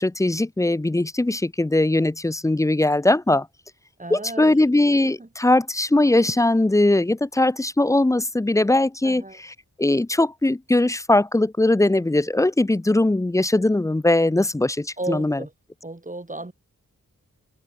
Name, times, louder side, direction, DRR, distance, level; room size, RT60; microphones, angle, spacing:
voice 1, 0.0-3.5 4.1-9.2 9.8-15.4, left 2 dB, 10° left, 0.4 m, -20 dB
voice 2, 4.0-4.6 4.9-5.3 9.0-9.4 15.0-15.5 15.8-16.5, right 2 dB, 25° right, 5.1 m, -34 dB
cardioid pair, 55°, 33 cm